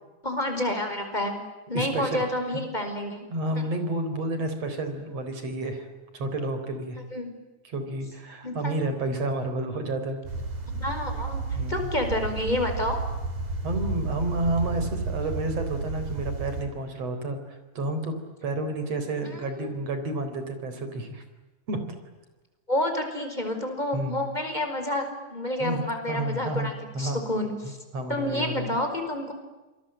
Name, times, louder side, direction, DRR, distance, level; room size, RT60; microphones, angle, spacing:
voice 1, 0.2-1.4 1.7-3.3 3.5-3.6 7.1-7.3 8.4-8.8 10.7-11.4 11.7-13.0 19.2-19.7 22.7-27.8 28.1-29.3, left 1 dB, 10° left, 5 dB, 5.0 m, -29 dB
voice 2, 1.7-2.3 3.3-5.9 6.1-7.0 7.7-10.2 11.5-11.9 13.6-18.2 18.4-21.2 21.7-22.0 23.9-24.2 25.6-27.2 27.9-28.7, right 2 dB, 50° right, 8 dB, 5.0 m, -30 dB
sound 1, 10.2-16.6, right 3 dB, 65° right, 5.9 m, -32 dB
28.0 x 22.0 x 9.0 m, 1.1 s
omnidirectional pair, 3.8 m